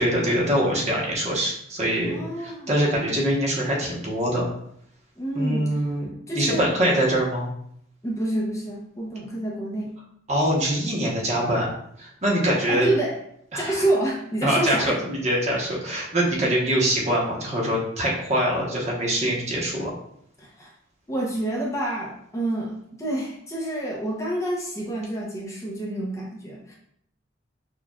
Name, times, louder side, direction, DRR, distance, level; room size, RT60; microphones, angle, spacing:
voice 1, 0.0-4.5 5.3-7.5 10.3-11.7 12.0-12.9 13.5-13.8 14.4-19.9, right 1 dB, 40° right, -3 dB, 1.0 m, -24 dB
voice 2, 2.0-2.7 5.2-5.8 6.3-6.7 8.0-9.9 12.7-13.2 13.5-15.0 16.4-16.5 20.4-20.7 21.1-26.7, right 1 dB, 15° left, -3 dB, 0.7 m, -28 dB
6.2 x 2.5 x 2.3 m, 0.70 s
head